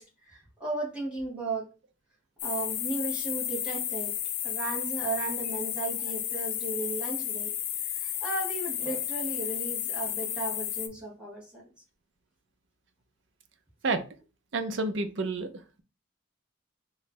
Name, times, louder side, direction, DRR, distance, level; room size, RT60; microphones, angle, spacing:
voice 1, 0.0-1.7 2.4-4.1 4.4-7.5 7.8-11.7, right 3 dB, 5° right, -5 dB, 1.2 m, -35 dB
sound 1, 2.4-10.9, left 10 dB, 75° left, 0.5 m, -32 dB
voice 2, 14.5-15.5, right 3 dB, 60° right, 8 dB, 0.5 m, -29 dB
3.0 x 2.4 x 4.2 m, 0.33 s
head